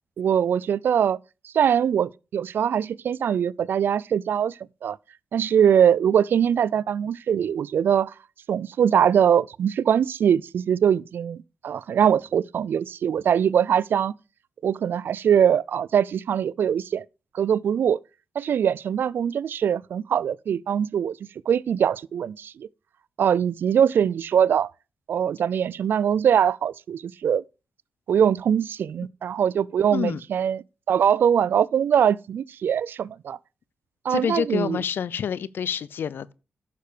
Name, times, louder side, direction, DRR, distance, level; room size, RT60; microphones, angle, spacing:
voice 1, 0.2-1.2 1.4-5.0 5.3-8.1 8.5-14.1 14.6-17.0 17.3-18.0 18.4-21.1 21.5-22.7 23.2-24.7 25.1-27.4 28.1-33.4 34.0-34.8, right 8 dB, 70° right, 0.4 m, -22 dB
voice 2, 29.9-30.2 34.1-36.3, left 8 dB, 70° left, 0.6 m, -27 dB
10.0 x 6.7 x 5.0 m
cardioid pair, 60°, 4 cm